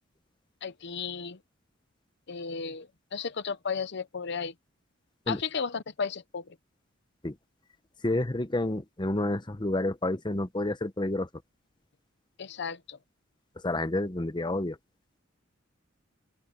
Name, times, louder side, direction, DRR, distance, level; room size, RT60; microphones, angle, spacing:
voice 1, 0.6-1.4 2.3-4.5 5.3-6.6 12.4-13.0, left 5 dB, 55° left, 0.7 m, -34 dB
voice 2, 8.0-11.3 13.6-14.8, left 1 dB, 20° left, 0.9 m, -29 dB
open air
head